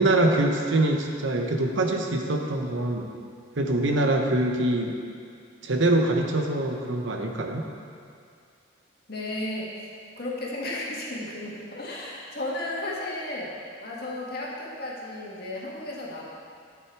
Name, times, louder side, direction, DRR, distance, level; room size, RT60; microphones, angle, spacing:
voice 1, 0.0-3.1 3.6-4.9 5.6-7.6, right 2 dB, 70° right, 2 dB, 0.9 m, -24 dB
voice 2, 9.1-9.9 10.2-13.5 13.8-16.2, left 1 dB, 50° left, -4 dB, 1.8 m, -34 dB
12.0 x 6.2 x 4.7 m, 2.3 s
head